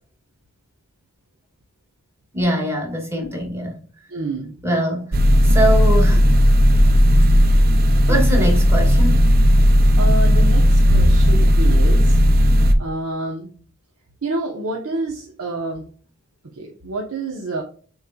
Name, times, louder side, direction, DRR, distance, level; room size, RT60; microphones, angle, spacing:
voice 1, 2.3-3.8 4.6-5.1 5.4-6.2 8.1-9.3, equal, 10° right, 1.5 m, -22 dB
voice 2, 4.1-4.6 8.1-8.5 10.0-12.2 12.8-13.5 14.2-15.8 16.6-17.6, right 2 dB, 90° right, 1.0 m, -27 dB
sound 1, 5.1-12.7, equal, 45° right, 0.6 m, -14 dB
6.5 x 3.2 x 2.3 m
head